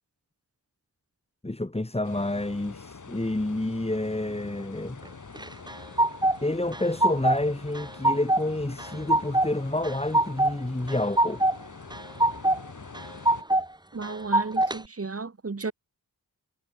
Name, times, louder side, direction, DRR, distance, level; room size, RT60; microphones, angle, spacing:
voice 1, 1.4-5.0 6.4-11.4, left 1 dB, 15° left, 5.7 m, -29 dB
sound 1, 2.0-13.4, left 5 dB, 55° left, 6.2 m, -45 dB
sound 2, 5.4-6.4 6.7-7.4 7.7-8.4 8.8-9.5 9.8-10.5 10.9-11.6 11.9-12.6 12.9-13.6 14.0-14.8, right 1 dB, 10° right, 2.4 m, -23 dB
voice 2, 13.9-15.7, right 4 dB, 40° right, 4.1 m, -33 dB
wide cardioid pair, 110°, 36 cm